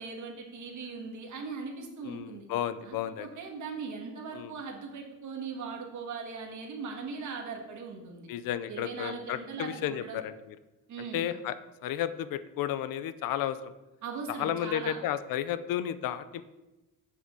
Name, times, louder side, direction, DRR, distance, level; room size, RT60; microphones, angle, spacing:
voice 1, 0.0-2.5 2.8-8.3 8.7-10.2 10.9-11.3 14.0-15.0, right 5 dB, 50° right, 1 dB, 1.9 m, -39 dB
voice 2, 2.0-3.3 4.3-4.5 8.3-10.6 11.1-13.6 14.3-16.4, left 11 dB, 60° left, 13 dB, 0.6 m, -33 dB
7.8 x 6.6 x 6.2 m, 1.0 s
cardioid pair, 175°, 38 cm